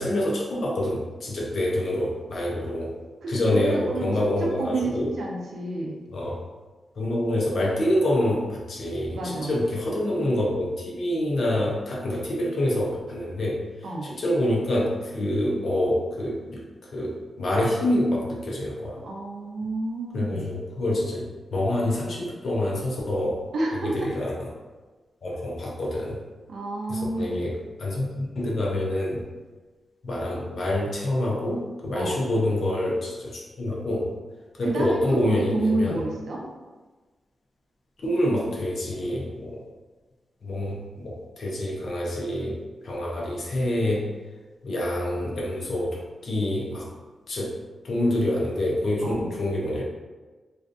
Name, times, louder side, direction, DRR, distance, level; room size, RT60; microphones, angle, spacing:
voice 1, 0.0-2.9 3.3-5.1 6.1-6.4 7.0-13.6 14.0-19.0 20.1-23.4 23.8-24.5 25.2-26.2 26.9-29.2 30.0-34.1 34.6-36.0 38.0-39.6 40.4-44.1 44.6-46.9 47.3-47.5 47.8-49.8, left 1 dB, 50° left, -3 dB, 0.4 m, -26 dB
voice 2, 3.2-4.1 4.4-6.0 9.1-9.6 13.8-14.1 19.0-20.5 23.5-24.1 26.5-27.4 31.9-32.1 34.6-36.4 49.0-49.3, right 2 dB, 70° right, -2 dB, 0.5 m, -29 dB
2.5 x 2.3 x 2.4 m, 1.3 s
wide cardioid pair, 165°, 0 cm